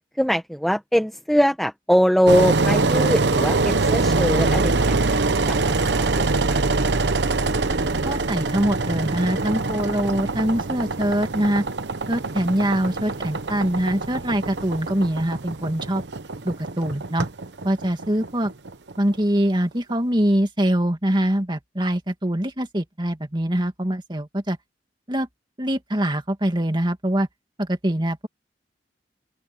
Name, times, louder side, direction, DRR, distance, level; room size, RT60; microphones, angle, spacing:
voice 1, 0.2-7.0, equal, ahead, 1.1 m, -23 dB
Engine, 2.3-19.2, right 3 dB, 80° right, 1.0 m, -24 dB
voice 2, 8.0-11.6 12.1-16.0 16.4-17.3 17.6-18.5 19.0-24.6 25.1-25.3 25.6-27.3 27.6-28.3, right 1 dB, 25° right, 2.4 m, -23 dB
open air
head